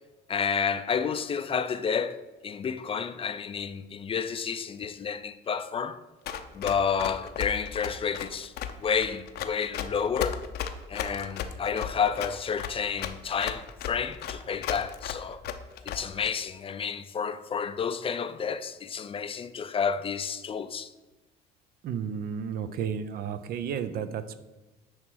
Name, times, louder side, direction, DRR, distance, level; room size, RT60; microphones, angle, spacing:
voice 1, 0.3-6.0 6.5-8.5 8.8-10.4 10.9-15.4 15.8-20.9, left 6 dB, 35° left, 0.4 m, -30 dB
Run, 6.3-16.3, left 9 dB, 70° left, 0.7 m, -35 dB
voice 2, 21.8-24.4, right 7 dB, 65° right, 0.6 m, -32 dB
9.4 x 3.2 x 6.1 m
cardioid pair, 110°, 17 cm